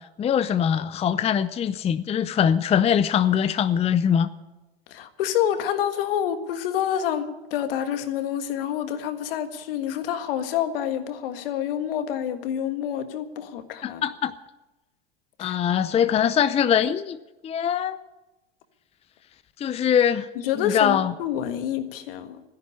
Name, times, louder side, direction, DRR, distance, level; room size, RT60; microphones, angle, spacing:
voice 1, 0.2-4.3 13.8-14.3 15.4-17.2 17.4-18.0 19.6-20.3 20.6-21.1, left 8 dB, 20° left, 0.6 m, -22 dB
voice 2, 4.9-14.0 15.4-15.6 20.3-22.4, left 10 dB, 65° left, 1.6 m, -28 dB
13.5 x 10.5 x 9.6 m
hypercardioid pair, 90°, 30 cm